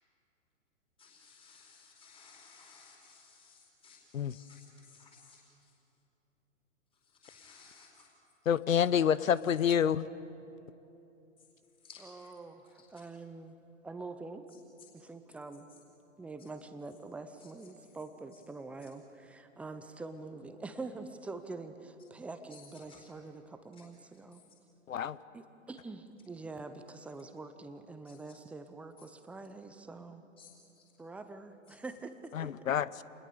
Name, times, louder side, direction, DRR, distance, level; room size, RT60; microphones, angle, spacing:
voice 1, 1.0-5.7 7.0-8.1 11.4-11.5 11.8-12.3 12.6-12.8 15.7-15.8 17.4-17.5 18.8-18.9 22.5-23.1 23.7-23.8 24.3-24.4 28.0-28.2 30.4-30.5 30.8-30.9 31.7-31.8, left 5 dB, 15° left, -3 dB, 4.5 m, -58 dB
voice 2, 8.5-10.1 24.9-25.2 32.3-32.9, left 8 dB, 75° left, 18 dB, 0.8 m, -27 dB
voice 3, 12.0-13.6 13.8-14.4 14.9-15.7 16.2-24.4 25.3-30.2 31.0-32.5, right 3 dB, 5° right, 9 dB, 0.6 m, -45 dB
27.5 x 20.5 x 6.8 m, 2.9 s
hypercardioid pair, 125°, 40 cm